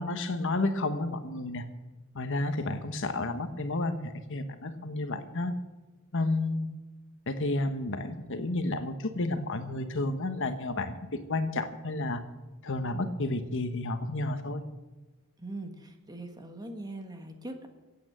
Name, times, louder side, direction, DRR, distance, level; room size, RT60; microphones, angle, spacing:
voice 1, 0.0-1.6 2.1-5.5 6.1-6.7 7.3-11.0 11.3-12.2 12.6-14.6, left 2 dB, 60° left, 9 dB, 1.2 m, -31 dB
voice 2, 15.4-17.7, right 2 dB, 20° right, 5 dB, 1.5 m, -41 dB
16.0 x 8.7 x 7.5 m, 1.2 s
head